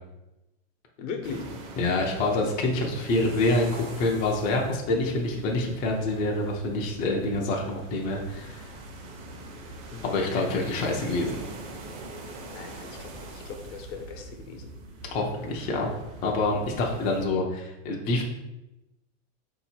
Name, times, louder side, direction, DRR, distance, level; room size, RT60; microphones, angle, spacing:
voice 1, 1.0-1.5 9.9-10.6 12.4-14.7, left 5 dB, 75° left, 4 dB, 0.9 m, -39 dB
sound 1, 1.2-17.2, right 2 dB, 45° right, 0.9 m, -43 dB
voice 2, 1.8-8.7 10.0-11.4 15.1-15.9 16.2-18.2, left 2 dB, 25° left, 0 dB, 0.4 m, -26 dB
4.0 x 2.8 x 4.2 m, 0.95 s
supercardioid pair, 155°, 38 cm